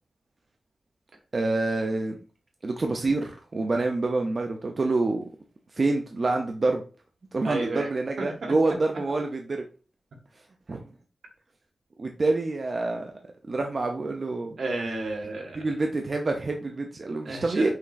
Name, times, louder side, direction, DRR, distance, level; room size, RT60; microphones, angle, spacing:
voice 1, 1.3-2.2 2.6-5.3 5.7-6.8 7.3-9.6 10.7-10.8 12.0-13.1 13.5-14.6 15.5-17.7, right 3 dB, 40° right, 3 dB, 0.4 m, -27 dB
voice 2, 7.4-7.9 8.2-8.5 14.6-15.6 17.2-17.7, right 2 dB, 75° right, 1 dB, 1.3 m, -32 dB
5.7 x 3.0 x 2.4 m, 0.36 s
wide cardioid pair, 135°, 0 cm